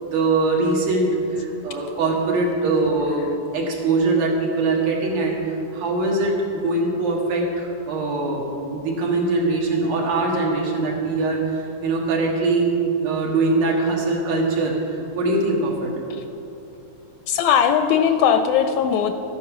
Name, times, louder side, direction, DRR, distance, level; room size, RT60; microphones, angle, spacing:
voice 1, 0.0-8.4 8.7-15.9, right 3 dB, 85° right, -2 dB, 3.4 m, -22 dB
voice 2, 17.3-19.1, left 8 dB, 80° left, 7 dB, 1.7 m, -18 dB
13.0 x 9.4 x 6.0 m, 3.0 s
omnidirectional pair, 3.6 m